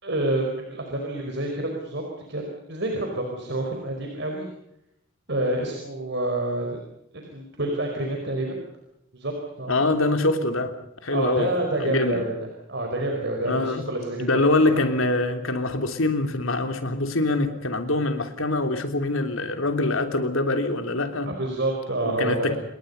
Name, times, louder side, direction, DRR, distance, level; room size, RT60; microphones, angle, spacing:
voice 1, 0.0-4.5 5.3-6.8 7.1-8.6 9.1-9.7 11.1-12.4 12.7-14.3 14.6-14.8 21.4-22.6, right 1 dB, 60° right, 2 dB, 4.8 m, -28 dB
voice 2, 9.7-10.7 11.0-11.5 11.8-12.2 13.4-13.8 14.2-21.3 22.0-22.6, left 2 dB, 85° left, 6 dB, 3.2 m, -24 dB
28.5 x 22.0 x 5.5 m, 0.81 s
head